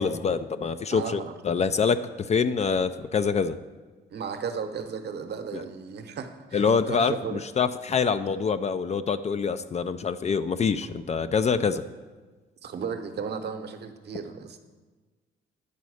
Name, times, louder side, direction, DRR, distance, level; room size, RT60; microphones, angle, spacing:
voice 1, 0.0-3.6 6.5-11.8, left 5 dB, 35° left, 12 dB, 0.4 m, -25 dB
voice 2, 0.9-1.3 4.1-7.4 12.6-14.6, right 6 dB, 55° right, 6 dB, 0.8 m, -35 dB
9.7 x 4.1 x 6.3 m, 1.4 s
cardioid pair, 90°, 20 cm